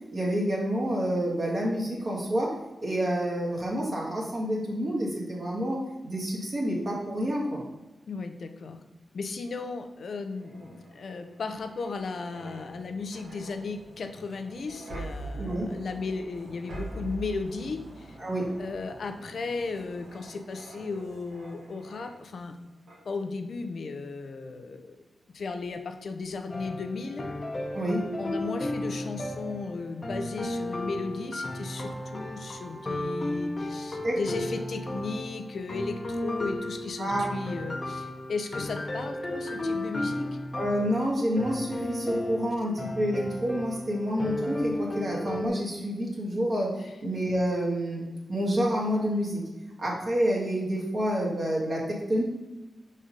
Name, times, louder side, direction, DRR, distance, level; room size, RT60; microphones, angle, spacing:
voice 1, 0.1-2.5 2.8-7.6 15.4-15.7 18.2-18.5 27.7-28.0 34.0-34.2 37.0-37.3 40.5-49.4 49.8-52.2, equal, 45° right, -4 dB, 1.8 m, -28 dB
voice 2, 8.1-8.8 9.1-18.2 18.6-22.6 23.0-25.0 25.3-27.2 28.2-40.3, left 4 dB, 65° left, 7 dB, 0.7 m, -35 dB
sound 1, 10.2-22.5 22.9-23.1, right 2 dB, 90° right, 1.8 m, -44 dB
sound 2, 26.5-45.5, left 1 dB, 30° left, 1.0 m, -34 dB
5.3 x 4.3 x 5.1 m, 1.1 s
wide cardioid pair, 105°, 0 cm